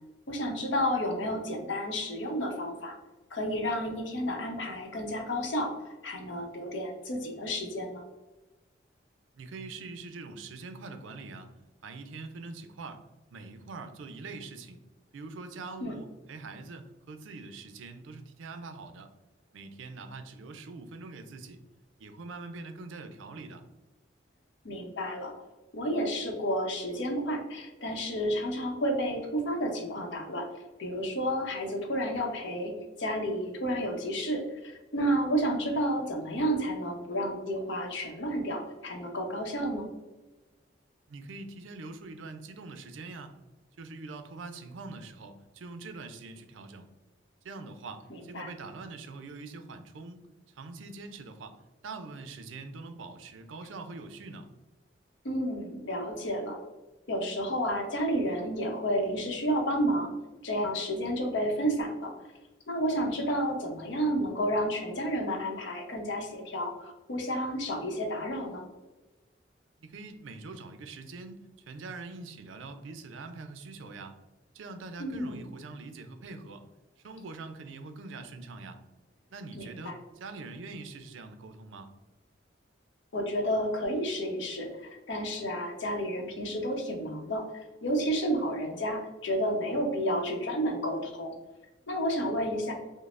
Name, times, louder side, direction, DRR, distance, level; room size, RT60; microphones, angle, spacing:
voice 1, 0.3-3.0 3.3-5.7 6.0-8.0 15.8-16.0 24.6-25.3 25.7-30.5 30.8-32.7 33.0-39.9 48.3-48.5 55.2-56.6 57.1-60.1 60.4-62.1 62.7-68.6 75.0-75.4 79.5-79.9 83.1-91.3 91.9-92.7, equal, 75° left, 2 dB, 0.7 m, -31 dB
voice 2, 9.4-11.5 11.8-13.0 13.3-14.8 15.1-19.1 19.5-21.6 22.0-23.6 41.1-43.4 43.8-46.9 47.4-50.2 50.5-54.5 69.8-71.4 71.7-74.2 74.5-76.6 77.0-78.8 79.3-81.9, right 3 dB, 90° right, 8 dB, 0.4 m, -43 dB
5.2 x 2.0 x 2.4 m, 1.1 s
head